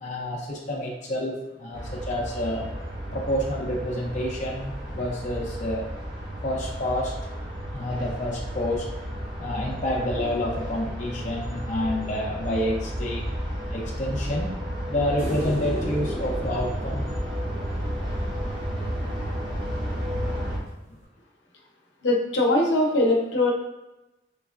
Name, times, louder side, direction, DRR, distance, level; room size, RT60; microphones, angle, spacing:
voice 1, 0.0-2.7 3.1-5.9 6.4-7.1 7.7-8.9 9.4-13.2 13.7-14.5 14.9-17.0 20.9-21.0, left 1 dB, 40° left, -2 dB, 0.5 m, -28 dB
sound 1, 1.7-20.6, equal, 25° right, 0.7 m, -32 dB
sound 2, 15.2-18.4 21.0-21.1, equal, 40° right, 1.5 m, -35 dB
voice 2, 22.0-23.5, left 1 dB, 85° left, -1 dB, 0.7 m, -21 dB
3.4 x 3.0 x 2.4 m, 0.99 s
head